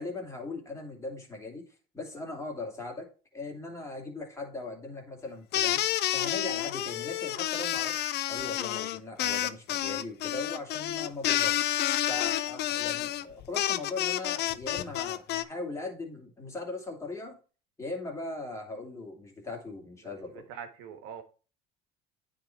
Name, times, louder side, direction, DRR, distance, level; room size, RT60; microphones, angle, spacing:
voice 1, 0.0-1.6 1.9-3.1 3.3-5.8 6.1-8.0 8.3-11.7 12.1-17.4 17.8-20.4, left 2 dB, 15° left, 2.8 m, -39 dB
sound 1, 5.5-15.4, left 13 dB, 55° left, 0.6 m, -29 dB
voice 2, 20.0-21.2, right 8 dB, 80° right, 1.6 m, -44 dB
9.3 x 4.0 x 4.5 m
supercardioid pair, 105°, 21 cm